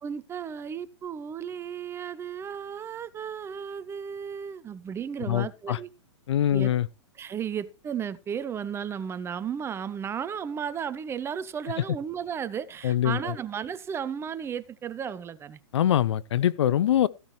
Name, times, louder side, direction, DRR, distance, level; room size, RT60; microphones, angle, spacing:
voice 1, 0.0-5.9 6.5-6.7 7.2-15.6, right 8 dB, 15° right, 0.6 m, -34 dB
voice 2, 5.3-5.8 6.3-6.9 12.8-13.3 15.7-17.1, left 11 dB, 60° left, 0.6 m, -23 dB
15.0 x 10.5 x 3.1 m
hypercardioid pair, 115°, 16 cm